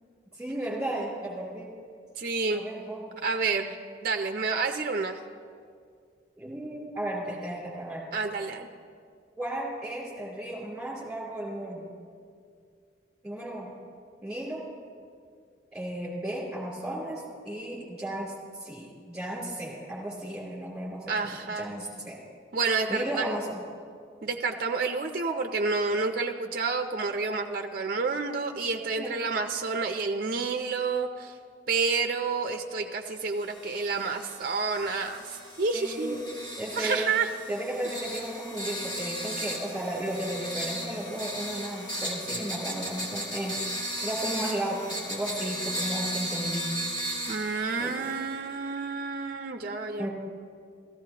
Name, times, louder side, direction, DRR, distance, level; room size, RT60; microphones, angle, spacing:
voice 1, 0.3-1.7 2.5-3.2 6.4-8.1 9.4-11.9 13.2-13.7 14.2-14.7 15.7-18.3 18.6-22.2 22.9-23.6 29.0-29.3 35.7-36.3 36.6-37.1 37.5-43.8 44.0-46.8 47.8-47.9 50.0-50.1, right 1 dB, 5° right, -5 dB, 3.0 m, -34 dB
voice 2, 2.2-2.6 3.2-3.8 4.0-5.2 8.1-8.7 21.1-21.7 22.5-23.3 24.2-31.3 31.7-36.2 36.7-37.3 47.3-50.1, right 4 dB, 50° right, 5 dB, 0.5 m, -29 dB
sound 1, 33.4-48.3, equal, 25° left, 1.9 m, -36 dB
15.0 x 14.5 x 2.9 m, 2.2 s
head